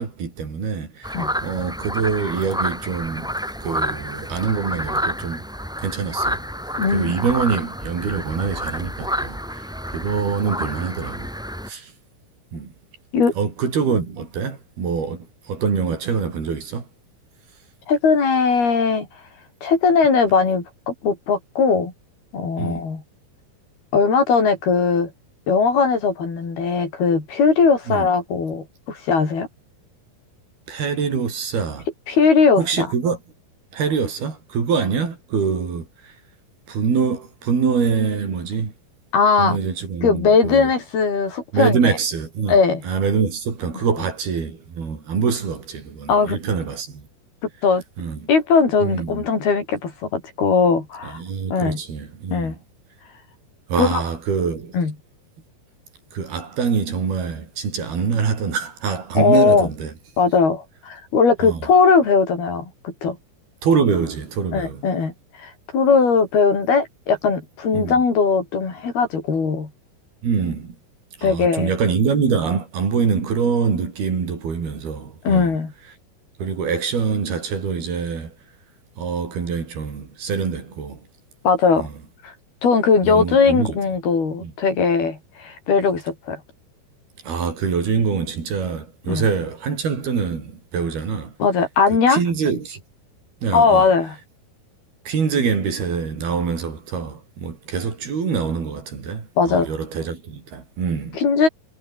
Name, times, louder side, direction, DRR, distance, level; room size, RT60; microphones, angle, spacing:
voice 1, 0.0-3.3 3.6-5.5 5.8-6.5 6.9-11.3 11.7-11.9 12.5-12.7 13.4-16.9 22.6-22.8 27.9-28.1 30.7-31.9 32.6-33.2 33.7-36.2 36.7-38.7 39.4-40.7 41.5-47.1 48.0-48.3 48.8-49.3 51.0-52.6 53.7-54.8 56.1-59.9 61.4-61.7 63.6-64.8 67.7-68.0 70.2-70.8 71.2-75.6 76.4-78.4 79.0-81.1 81.8-81.9 83.0-83.8 84.4-84.5 87.2-91.3 91.9-92.8 93.4-93.9 95.0-101.2, right 6 dB, 75° right, 6.7 m, -24 dB
sound 1, 1.0-11.7, equal, ahead, 3.2 m, -29 dB
voice 2, 6.8-7.1 13.1-13.3 17.9-19.1 19.6-21.9 22.3-23.0 23.9-25.1 25.5-29.5 32.1-32.6 39.1-39.6 40.0-41.8 42.5-42.8 46.1-46.4 47.6-47.8 48.3-51.2 51.5-51.8 52.3-52.6 53.8-53.9 54.7-54.9 59.2-59.7 60.2-63.2 64.5-65.1 65.4-69.7 71.2-71.7 75.2-75.7 81.4-81.9 82.2-82.3 82.6-86.4 89.1-89.3 91.4-92.2 93.5-94.2 99.4-99.7 101.1-101.5, left 5 dB, 75° left, 7.9 m, -19 dB
omnidirectional pair, 4.5 m